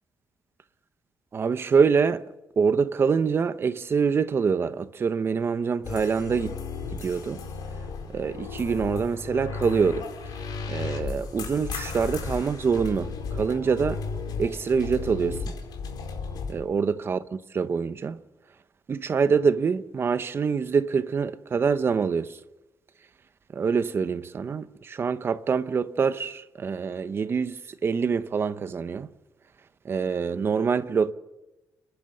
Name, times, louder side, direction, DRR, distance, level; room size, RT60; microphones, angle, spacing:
voice 1, 1.3-2.2 2.6-6.6 7.0-7.4 8.1-10.1 10.7-14.0 14.4-15.5 16.5-18.2 18.9-22.4 23.5-29.1 29.8-31.1, right 5 dB, 35° right, 0.8 m, -25 dB
sound 1, 5.8-16.5, left 4 dB, 80° left, 4.5 m, -34 dB
29.0 x 11.5 x 9.1 m
cardioid pair, 145°, 7 cm